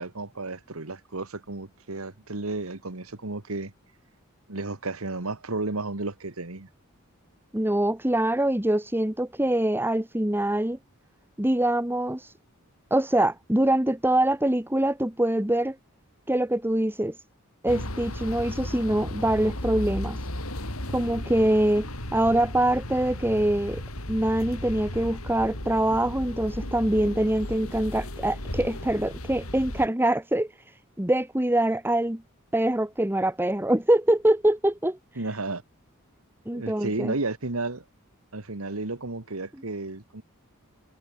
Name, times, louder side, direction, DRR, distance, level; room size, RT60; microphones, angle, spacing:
voice 1, 0.0-3.7 4.5-6.7 35.2-35.6 36.5-37.8 38.3-40.2, right 2 dB, 75° right, 1.9 m, -33 dB
voice 2, 7.5-10.8 11.4-12.3 12.9-15.7 16.3-17.1 17.6-20.2 20.9-23.8 24.1-30.5 31.0-32.2 32.5-35.0 36.4-37.1, right 1 dB, 10° right, 1.5 m, -24 dB
sound 1, 17.7-29.9, left 1 dB, 85° left, 6.8 m, -35 dB
head